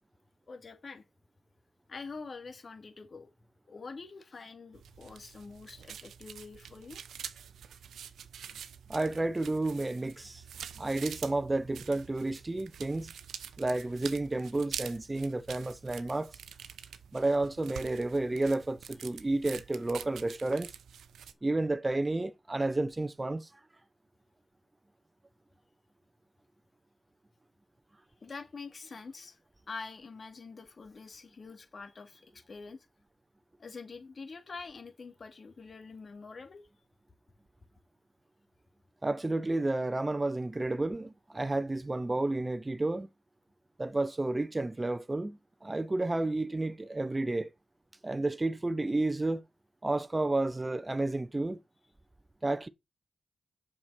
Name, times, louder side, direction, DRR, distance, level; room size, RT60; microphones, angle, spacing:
voice 1, 0.5-1.0 1.9-3.3 3.7-7.0 28.2-29.4 29.7-32.9 33.6-36.7, left 4 dB, 50° left, 2.5 m, -45 dB
sound 1, 4.7-21.3, right 8 dB, 85° right, 0.8 m, -46 dB
voice 2, 8.9-10.4 10.8-13.1 13.6-16.3 17.1-20.7 21.4-23.5 39.0-43.1 43.8-47.5 48.0-49.4 49.8-51.6 52.4-52.7, right 2 dB, 25° right, 0.9 m, -31 dB
7.5 x 6.2 x 5.7 m
cardioid pair, 55°, 0 cm